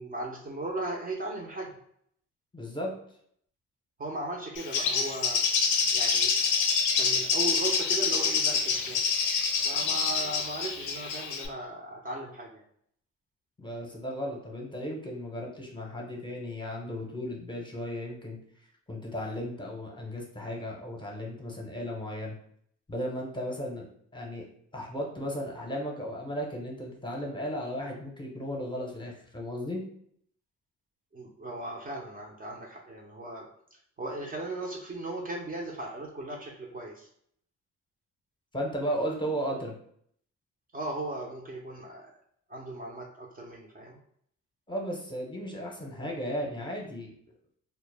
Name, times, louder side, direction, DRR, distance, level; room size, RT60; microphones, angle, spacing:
voice 1, 0.0-1.7 4.0-5.4 5.9-6.3 7.0-9.1 9.6-12.6 31.1-37.1 40.7-42.1 42.5-44.0, right 2 dB, 30° right, -1 dB, 0.5 m, -37 dB
voice 2, 2.5-2.9 13.6-18.4 18.9-22.4 22.9-23.9 24.1-24.5 24.7-29.8 38.5-39.7 44.7-47.1, equal, 15° left, -1 dB, 0.7 m, -35 dB
Bird, 4.6-11.5, left 5 dB, 85° left, 0.5 m, -27 dB
2.1 x 2.0 x 3.2 m, 0.67 s
cardioid pair, 90°, 30 cm